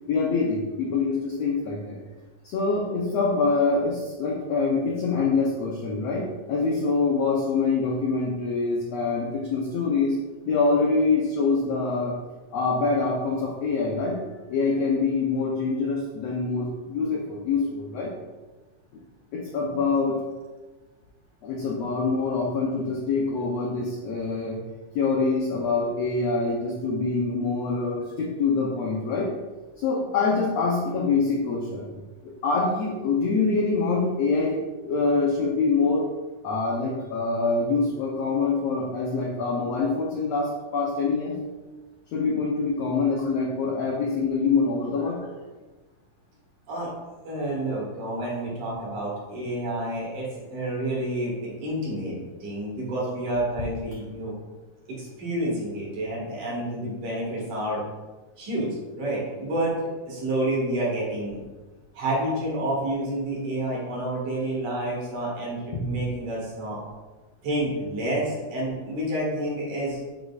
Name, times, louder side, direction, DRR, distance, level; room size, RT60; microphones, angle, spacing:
voice 1, 0.1-2.0 2.4-10.2 10.4-12.2 12.5-14.2 14.5-18.1 18.9-19.0 19.3-20.2 21.4-24.6 24.9-29.3 29.8-31.9 32.4-36.1 36.4-41.4 42.1-45.3 65.7-65.9, left 4 dB, 80° left, -2 dB, 1.4 m, -25 dB
voice 2, 47.2-54.3 54.9-57.8 58.4-58.7 59.0-59.7 60.1-61.4 61.9-66.8 67.4-70.0, right 1 dB, 65° right, -4 dB, 3.1 m, -29 dB
6.5 x 6.2 x 2.4 m, 1.2 s
omnidirectional pair, 3.9 m